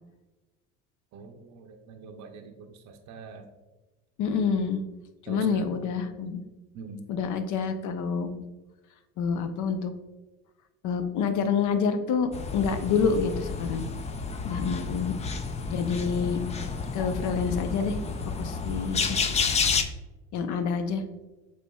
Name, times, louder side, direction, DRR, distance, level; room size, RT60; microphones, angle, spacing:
voice 1, 1.1-3.5 5.3-5.7 6.7-7.1, right 4 dB, 45° right, 4 dB, 0.6 m, -44 dB
voice 2, 4.2-4.8 5.2-6.4 7.1-8.4 9.2-9.9 10.8-13.8 14.4-15.2 15.7-16.4 16.9-18.0 18.4-19.2 20.3-21.0, left 5 dB, 50° left, 9 dB, 0.7 m, -27 dB
sound 1, 12.3-19.8, left 5 dB, 20° left, 0.3 m, -30 dB
6.8 x 3.2 x 2.3 m, 1.1 s
supercardioid pair, 95°, 38 cm